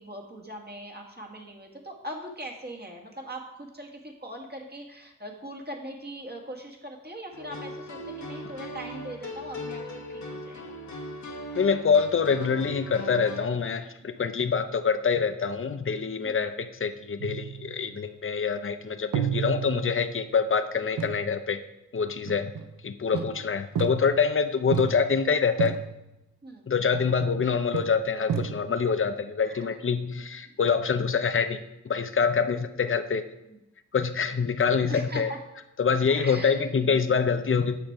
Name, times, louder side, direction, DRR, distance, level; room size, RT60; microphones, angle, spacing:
voice 1, 0.0-10.8 14.0-14.1 16.2-16.5 22.3-22.4 23.1-23.2 26.4-26.7 29.5-29.7 30.5-30.6 33.5-33.6 34.9-35.4 36.1-36.9, right 1 dB, 30° right, 0 dB, 2.0 m, -41 dB
sound 1, 7.3-13.4, left 1 dB, 60° left, 1.3 m, -39 dB
voice 2, 11.6-21.6 21.9-22.5 22.8-25.7 26.7-31.6 31.8-33.2 33.9-35.3 35.8-37.8, left 5 dB, 40° left, 9 dB, 0.7 m, -25 dB
sound 2, 17.2-18.0 19.1-20.3 21.0-21.3 22.3-22.8 23.1-24.3 24.7-25.3 25.6-26.1 26.9-27.5 27.7-28.9, right 8 dB, 90° right, 0.6 m, -32 dB
8.9 x 6.0 x 4.7 m, 0.90 s
cardioid pair, 50°, 32 cm